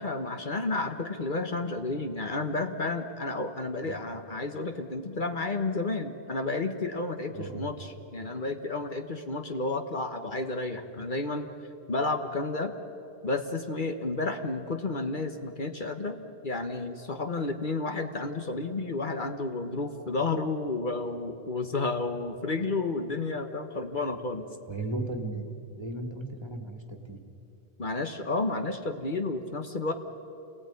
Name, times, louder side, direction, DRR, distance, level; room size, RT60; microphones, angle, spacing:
voice 1, 0.0-11.5 11.9-12.7 13.2-16.2 16.4-24.5 27.8-29.9, left 3 dB, 50° left, 6 dB, 1.3 m, -31 dB
voice 2, 7.3-7.6 24.7-25.5 25.7-27.2, right 2 dB, 25° right, 5 dB, 2.0 m, -35 dB
28.0 x 19.0 x 9.7 m, 2.8 s
omnidirectional pair, 1.1 m